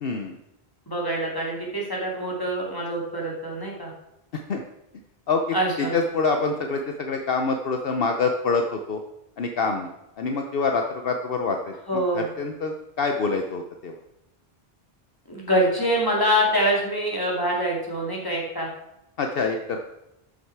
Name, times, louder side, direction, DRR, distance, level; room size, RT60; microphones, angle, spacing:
voice 1, 0.0-0.4 4.3-4.6 5.3-5.4 5.8-9.0 9.4-11.7 12.1-14.0 19.2-19.8, left 4 dB, 65° left, 4 dB, 1.0 m, -26 dB
voice 2, 0.9-3.9 5.5-5.9 11.9-12.3 15.3-18.7, equal, 20° left, -2 dB, 2.6 m, -25 dB
13.0 x 6.6 x 4.7 m, 0.89 s
omnidirectional pair, 1.1 m